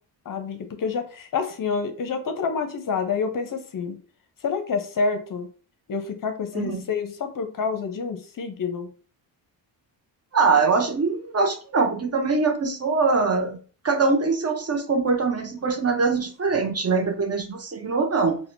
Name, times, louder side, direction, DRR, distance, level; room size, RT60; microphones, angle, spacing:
voice 1, 0.3-4.0 4.4-5.5 5.9-8.9, left 5 dB, 40° left, 7 dB, 0.6 m, -28 dB
voice 2, 10.3-13.6 13.8-18.4, right 4 dB, 30° right, 6 dB, 0.6 m, -23 dB
4.1 x 2.2 x 2.5 m, 0.39 s
supercardioid pair, 50°, 50 cm